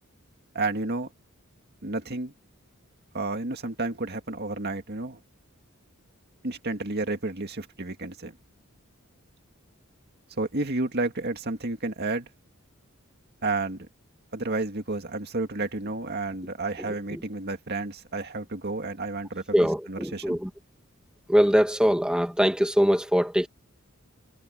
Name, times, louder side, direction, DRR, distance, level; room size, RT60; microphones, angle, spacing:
voice 1, 0.5-1.1 1.8-2.3 3.1-5.2 6.4-8.3 10.4-12.3 13.4-13.9 14.3-19.4 19.9-20.4, right 2 dB, 50° right, 2.1 m, -31 dB
voice 2, 16.8-17.2 19.5-20.5 21.3-23.5, equal, 5° right, 1.6 m, -23 dB
head